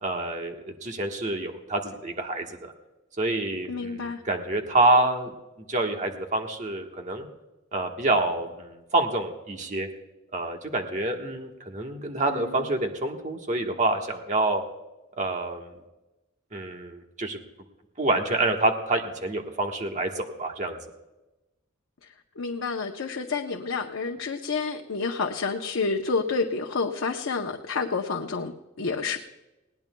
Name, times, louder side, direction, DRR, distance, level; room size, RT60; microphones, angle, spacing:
voice 1, 0.0-2.7 3.2-5.3 5.7-7.3 7.7-9.9 10.3-14.6 15.2-15.7 16.5-17.4 18.0-20.8, right 2 dB, 35° right, 3 dB, 1.3 m, -27 dB
voice 2, 3.7-4.2 12.3-12.6 22.4-29.2, left 4 dB, 80° left, 2 dB, 0.8 m, -29 dB
20.0 x 18.0 x 2.3 m, 1.0 s
head